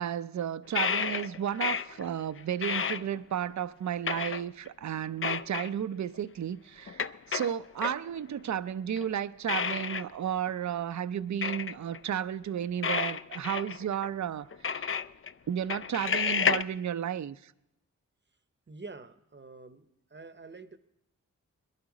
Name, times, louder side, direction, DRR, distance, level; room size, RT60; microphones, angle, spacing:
voice 1, 0.0-15.0 15.5-17.5, right 9 dB, 60° right, 0.5 m, -33 dB
sound 1, 0.8-2.1 2.4-3.5 4.1-4.7 5.2-5.7 6.1-6.2 6.9-8.0 9.0-9.1 9.5-10.1 10.5-10.6 11.4-12.0 12.8-14.1 14.5-15.3 15.7-16.6, left 6 dB, 40° left, 0.4 m, -31 dB
voice 2, 18.7-20.8, right 3 dB, 35° right, 0.8 m, -47 dB
21.0 x 11.5 x 4.9 m
cardioid pair, 40°, 33 cm